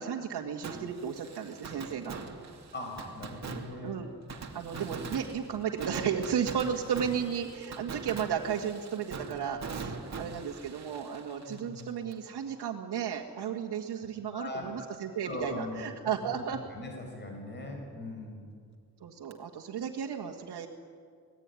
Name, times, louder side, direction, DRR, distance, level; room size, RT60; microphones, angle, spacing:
voice 1, 0.0-2.2 3.8-4.1 4.5-16.6 19.0-20.7, right 8 dB, 80° right, -2 dB, 2.0 m, -34 dB
Fireworks, 0.6-12.3 12.6-12.7 19.3-19.4, right 4 dB, 45° right, 2.7 m, -42 dB
voice 2, 2.7-4.0 4.7-5.0 11.5-11.9 14.3-14.9 15.3-16.4 16.7-18.4, left 2 dB, 25° left, 2 dB, 5.5 m, -41 dB
26.5 x 19.5 x 9.9 m, 2.1 s
wide cardioid pair, 150°, 39 cm